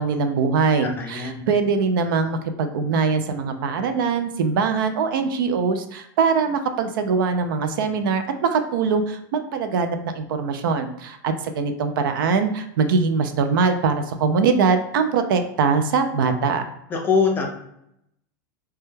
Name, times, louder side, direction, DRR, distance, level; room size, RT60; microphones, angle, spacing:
voice 1, 0.0-16.6, right 5 dB, 80° right, 8 dB, 0.4 m, -22 dB
voice 2, 0.8-1.4 16.9-17.5, left 5 dB, 20° left, 2 dB, 0.4 m, -23 dB
2.2 x 2.1 x 3.1 m, 0.78 s
supercardioid pair, 150°, 11 cm